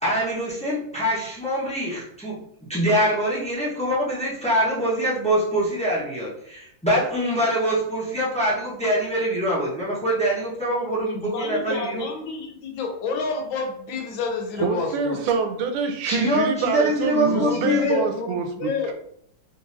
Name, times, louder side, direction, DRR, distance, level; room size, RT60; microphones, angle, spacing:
voice 1, 0.0-2.4 2.7-12.1 16.1-17.9, equal, 5° left, -8 dB, 0.5 m, -24 dB
voice 2, 11.0-15.2 17.2-18.3 18.6-18.9, left 4 dB, 75° left, 2 dB, 1.4 m, -29 dB
voice 3, 14.6-18.9, right 5 dB, 90° right, 6 dB, 1.5 m, -26 dB
3.9 x 3.0 x 2.6 m, 0.71 s
omnidirectional pair, 2.3 m